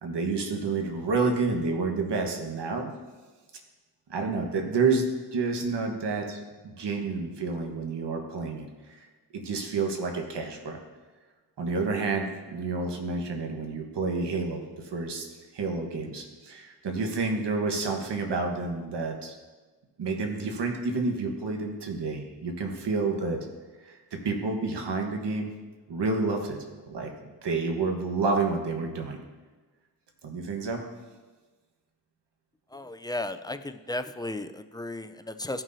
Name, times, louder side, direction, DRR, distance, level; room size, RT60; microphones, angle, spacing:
voice 1, 0.0-2.9 4.1-5.0 5.3-9.1 9.3-10.8 11.6-15.2 15.5-19.4 20.0-23.4 23.8-25.5 25.9-26.6 26.9-27.1 27.4-29.2 30.2-30.9, right 4 dB, 75° right, 3 dB, 1.4 m, -29 dB
voice 2, 32.7-35.6, left 2 dB, 10° left, 9 dB, 0.4 m, -35 dB
15.0 x 6.0 x 2.7 m, 1.3 s
cardioid pair, 65°, 42 cm